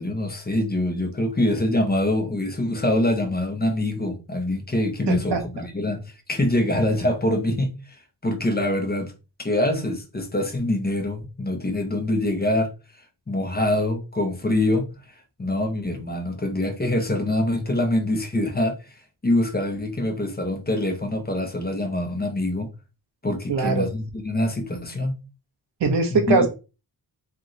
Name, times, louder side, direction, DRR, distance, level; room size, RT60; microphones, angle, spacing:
voice 1, 0.0-8.0 8.2-9.1 9.4-12.7 13.3-14.9 15.4-22.7 23.2-25.2 26.1-26.5, left 1 dB, 25° left, 1.0 m, -24 dB
voice 2, 5.1-5.4 23.5-23.9 25.8-26.5, right 3 dB, 90° right, 1.2 m, -21 dB
3.4 x 3.1 x 3.9 m
wide cardioid pair, 105°, 41 cm